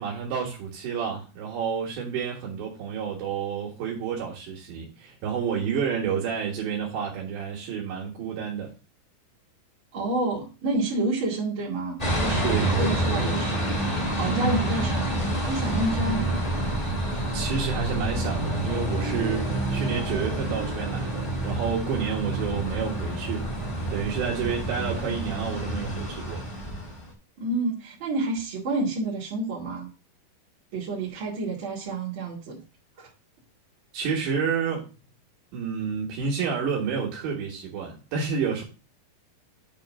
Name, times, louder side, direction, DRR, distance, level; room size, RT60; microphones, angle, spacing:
voice 1, 0.0-8.7 12.4-13.2 14.2-14.6 17.0-23.5 23.9-26.5 33.9-34.9 35.5-38.6, right 6 dB, 80° right, 3.8 m, -30 dB
voice 2, 9.9-13.6 14.2-15.0 15.3-16.5 27.4-29.9 30.7-32.6 33.0-33.1, right 2 dB, 40° right, 2.0 m, -29 dB
sound 1, 12.0-27.1, right 1 dB, 15° left, 1.4 m, -28 dB
8.7 x 3.3 x 6.1 m
omnidirectional pair, 5.0 m